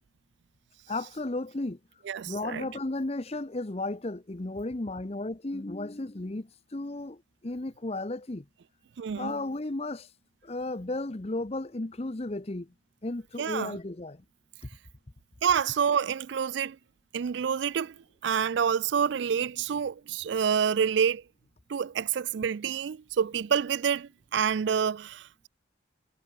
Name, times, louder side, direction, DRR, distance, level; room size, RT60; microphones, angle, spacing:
voice 1, 0.9-1.8 2.3-8.4 9.2-10.1 10.4-12.7 13.0-14.2, left 2 dB, 30° left, 0.8 m, -34 dB
voice 2, 2.1-2.7 9.0-9.4 13.4-13.8 15.4-16.8 17.1-17.9 18.2-21.2 21.7-25.5, right 7 dB, 65° right, 0.4 m, -28 dB
head